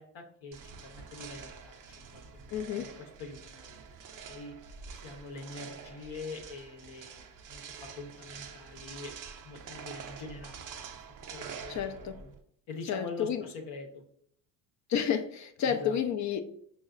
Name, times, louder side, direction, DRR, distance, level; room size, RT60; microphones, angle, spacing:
voice 1, 0.0-3.8 4.3-4.6 4.9-7.6 8.0-9.1 9.4-10.8 11.3-12.3 12.7-14.0 15.6-16.0, left 3 dB, 60° left, 0.8 m, -44 dB
sound 1, 0.5-12.4, right 6 dB, 40° right, 0.5 m, -47 dB
voice 2, 2.5-2.9 11.7-12.2 12.9-13.4 14.9-16.4, left 8 dB, 40° left, 0.4 m, -30 dB
5.3 x 2.1 x 2.4 m
hypercardioid pair, 60°, 49 cm